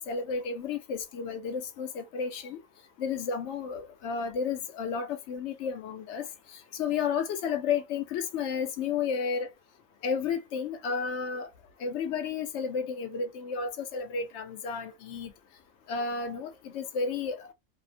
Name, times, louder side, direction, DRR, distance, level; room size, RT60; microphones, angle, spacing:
voice 1, 0.0-2.6 3.0-6.3 6.7-9.5 10.0-11.5 11.8-15.3 15.9-17.5, left 6 dB, 70° left, 0.8 m, -32 dB
2.7 x 2.0 x 2.5 m
omnidirectional pair, 1.3 m